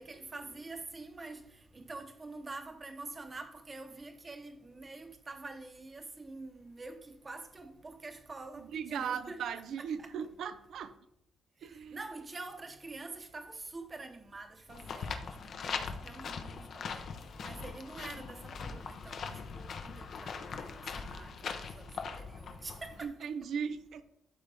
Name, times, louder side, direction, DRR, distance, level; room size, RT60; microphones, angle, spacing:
voice 1, 0.0-9.5 9.8-10.3 11.9-17.0 17.4-23.3, right 3 dB, 25° right, 1.0 m, -46 dB
voice 2, 8.6-10.9 11.6-12.0 23.0-24.0, right 7 dB, 70° right, 0.5 m, -38 dB
sound 1, 14.7-23.0, left 5 dB, 55° left, 0.8 m, -41 dB
11.5 x 4.1 x 3.5 m
cardioid pair, 110°, 0 cm